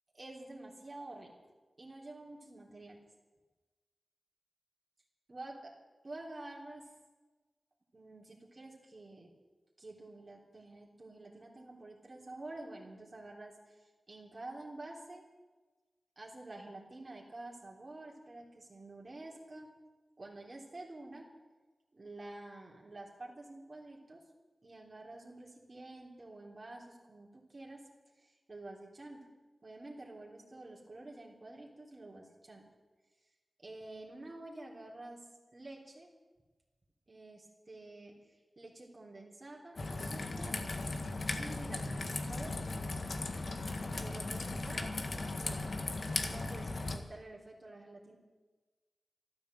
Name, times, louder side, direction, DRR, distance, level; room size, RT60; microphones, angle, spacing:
voice 1, 0.2-1.3 1.8-3.0 5.3-5.6 6.0-6.9 7.9-9.3 9.8-15.3 16.2-19.7 20.2-21.3 21.9-24.2 24.6-27.8 28.2-29.3 29.6-32.6 33.6-35.3 35.5-36.1 37.1-40.6 41.3-42.6 44.0-45.6 46.1-48.2, right 2 dB, 50° right, -2 dB, 3.4 m, -49 dB
Raindrop / Trickle dribble, 39.8-47.0, left 2 dB, 65° left, 1.6 m, -37 dB
13.5 x 12.5 x 8.0 m, 1.2 s
cardioid pair, 45°, 0 cm